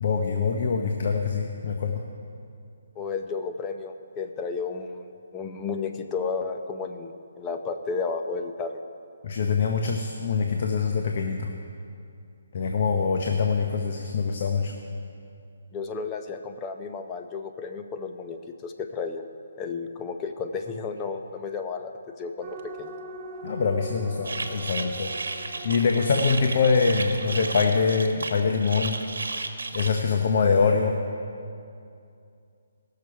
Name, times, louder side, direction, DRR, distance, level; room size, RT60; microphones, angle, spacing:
voice 1, 0.0-2.0 9.2-11.5 12.5-14.7 23.4-25.1 25.6-29.0 29.7-31.0, left 5 dB, 50° left, 3 dB, 0.8 m, -24 dB
voice 2, 3.0-5.1 5.3-8.8 15.7-19.2 19.6-22.9, left 4 dB, 20° left, 5 dB, 0.6 m, -33 dB
sound 1, 22.4-27.7, right 1 dB, 30° right, 0.8 m, -43 dB
sound 2, 24.2-30.0, right 3 dB, 85° right, 1.1 m, -33 dB
18.0 x 6.7 x 4.7 m, 2.5 s
hypercardioid pair, 155°, 0 cm